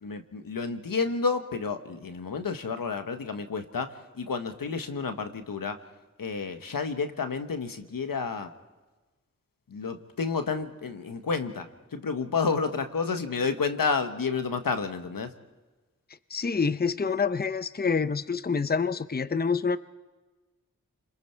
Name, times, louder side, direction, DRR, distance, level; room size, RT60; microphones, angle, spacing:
voice 1, 0.0-5.8 6.2-8.5 9.7-15.3, left 5 dB, 90° left, 8 dB, 1.3 m, -30 dB
voice 2, 16.3-19.8, left 5 dB, 30° left, 14 dB, 0.7 m, -27 dB
30.0 x 21.5 x 4.5 m, 1.2 s
cardioid pair, 40°, 33 cm